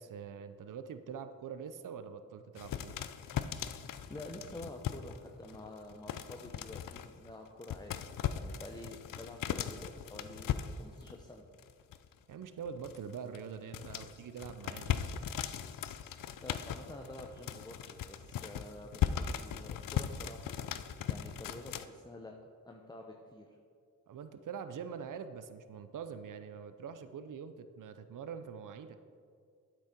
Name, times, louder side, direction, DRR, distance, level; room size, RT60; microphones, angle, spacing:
voice 1, 0.0-3.0 12.3-15.1 24.1-29.0, right 7 dB, 65° right, 10 dB, 0.6 m, -44 dB
sound 1, 2.6-5.2 5.4-7.3 7.6-11.2 11.6-12.1 12.4-21.9, left 9 dB, 70° left, 0.5 m, -38 dB
voice 2, 3.9-7.9 8.3-11.4 16.4-20.5 21.1-22.4 22.6-23.5, left 1 dB, 10° left, 2 dB, 0.7 m, -48 dB
8.4 x 6.1 x 4.5 m, 2.2 s
cardioid pair, 40°, 34 cm